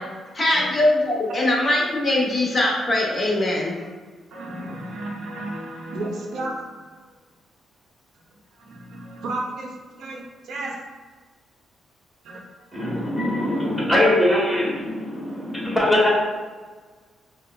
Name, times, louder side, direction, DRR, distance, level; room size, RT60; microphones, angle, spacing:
voice 1, 0.3-3.8, left 1 dB, 30° left, -3 dB, 0.9 m, -21 dB
voice 2, 4.3-6.8 8.6-10.8 12.2-12.4 12.7-13.0, right 2 dB, 70° right, -1 dB, 0.6 m, -33 dB
voice 3, 12.7-16.1, left 1 dB, 5° left, -6 dB, 1.2 m, -21 dB
5.3 x 2.1 x 2.3 m, 1.4 s
cardioid pair, 100°, 0 cm